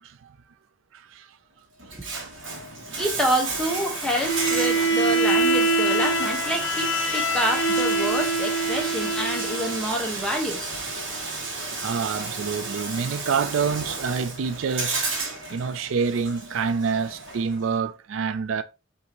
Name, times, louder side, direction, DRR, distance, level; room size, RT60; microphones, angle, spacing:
voice 1, 0.0-0.3 0.9-1.3 2.1-2.3 11.8-15.1 15.5-18.6, right 6 dB, 85° right, 0.4 m, -27 dB
Bathtub (filling or washing), 1.8-17.7, right 3 dB, 70° right, 1.4 m, -33 dB
voice 2, 3.0-10.8, equal, 5° left, 1.1 m, -28 dB
Bowed string instrument, 4.2-9.9, right 2 dB, 65° left, 0.8 m, -24 dB
5.8 x 2.8 x 2.9 m
head